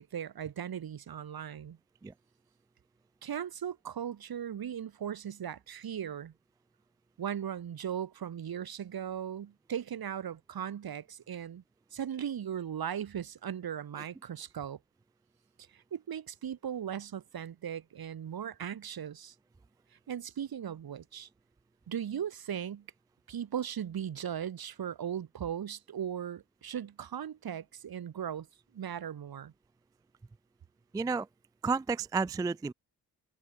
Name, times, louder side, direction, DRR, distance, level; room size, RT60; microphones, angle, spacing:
voice 1, 0.0-1.8 3.2-6.3 7.2-11.6 11.9-14.8 15.7-19.3 20.1-21.3 21.9-22.8 23.3-28.5 28.7-29.5, right 9 dB, 60° right, 1.7 m, -38 dB
voice 2, 30.9-31.3 31.6-32.7, right 4 dB, 10° right, 0.3 m, -31 dB
cardioid pair, 60°, 41 cm